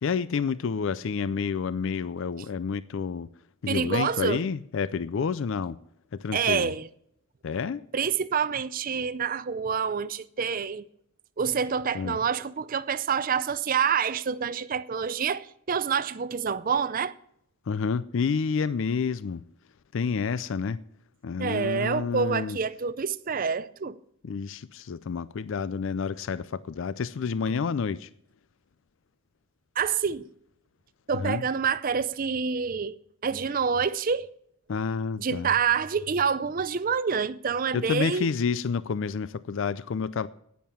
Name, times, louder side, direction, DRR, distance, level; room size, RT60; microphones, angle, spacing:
voice 1, 0.0-3.3 3.6-5.8 6.1-6.7 7.4-7.8 11.9-12.2 17.7-19.4 19.9-20.8 21.2-22.6 24.2-28.1 31.2-31.4 34.7-35.5 37.7-40.3, left 5 dB, 60° left, 0.4 m, -29 dB
voice 2, 3.7-4.5 6.3-6.8 7.9-10.9 11.4-17.1 21.4-24.0 29.8-30.3 31.1-34.3 35.2-38.3, right 6 dB, 40° right, 0.5 m, -27 dB
10.0 x 9.3 x 7.0 m
head